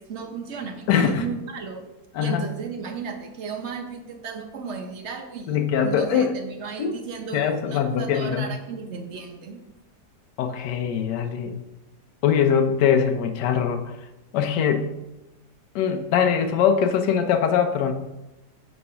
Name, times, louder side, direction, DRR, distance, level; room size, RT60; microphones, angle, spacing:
voice 1, 0.0-1.9 2.2-9.6, right 5 dB, 55° right, 4 dB, 0.9 m, -35 dB
voice 2, 0.9-1.2 2.1-2.4 5.5-6.3 6.8-7.0 7.3-8.5 10.4-11.6 12.2-14.0 14.3-14.9 15.7-17.9, left 7 dB, 85° left, 6 dB, 1.2 m, -22 dB
6.8 x 3.2 x 5.5 m, 0.96 s
omnidirectional pair, 1.8 m